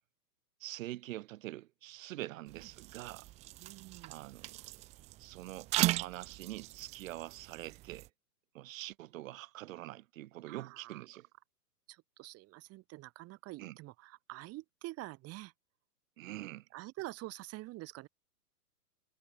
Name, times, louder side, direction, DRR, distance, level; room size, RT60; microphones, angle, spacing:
voice 1, 0.6-3.3 4.1-4.7 5.2-8.1 8.5-11.3 13.6-13.8 16.2-16.7, right 16 dB, 55° right, 1.6 m, -45 dB
sound 1, 2.5-8.1, right 18 dB, 15° right, 0.5 m, -38 dB
voice 2, 3.6-4.2 10.5-11.0 11.9-15.5 16.7-18.1, right 19 dB, 30° right, 3.4 m, -47 dB
hypercardioid pair, 135°, 48 cm